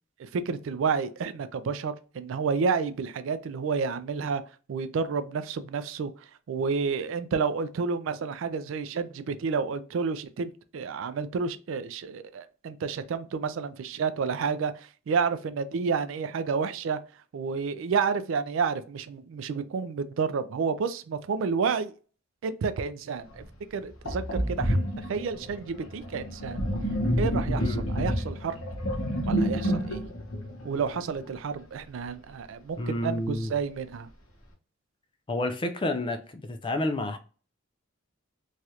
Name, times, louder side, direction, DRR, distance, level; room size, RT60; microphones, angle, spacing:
voice 1, 0.2-4.4 4.7-6.1 6.5-17.0 17.3-21.9 22.4-23.4 23.7-24.8 25.1-26.6 27.2-28.6 29.3-30.0 30.6-34.1, right 5 dB, 70° right, 0.3 m, -30 dB
Sink (filling or washing), 23.4-23.5 24.1-31.4, equal, 85° left, 0.9 m, -29 dB
voice 2, 32.8-33.5 35.3-37.2, left 1 dB, 25° left, 0.4 m, -30 dB
3.1 x 2.4 x 2.8 m
head